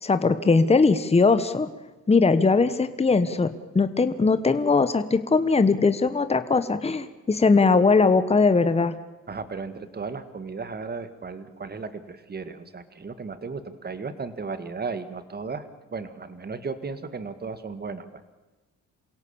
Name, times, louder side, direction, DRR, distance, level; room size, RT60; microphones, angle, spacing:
voice 1, 0.0-1.7 2.1-3.5 3.7-9.0, left 4 dB, 20° left, 11 dB, 1.3 m, -20 dB
voice 2, 9.3-15.7 15.9-18.2, right 4 dB, 30° right, 11 dB, 2.0 m, -35 dB
28.0 x 17.0 x 7.2 m, 1.2 s
cardioid pair, 90°, 30 cm